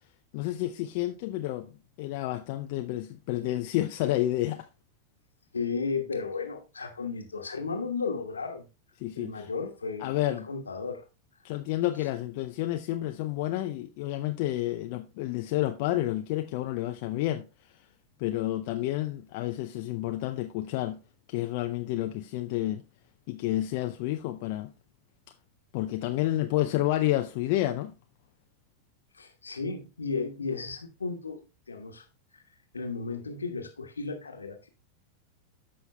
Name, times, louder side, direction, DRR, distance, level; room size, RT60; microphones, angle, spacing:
voice 1, 0.3-1.7 2.0-4.7 9.0-9.5 10.0-10.5 11.4-17.5 18.2-21.0 21.3-22.8 23.3-24.7 25.7-27.9, left 15 dB, 45° left, 0.5 m, -30 dB
voice 2, 5.5-8.6 9.2-11.0 29.1-31.4 31.7-32.0 32.3-32.4 32.7-34.7, left 4 dB, 75° left, 1.2 m, -34 dB
13.5 x 5.7 x 2.2 m
figure-of-eight pair, 90°, 0 cm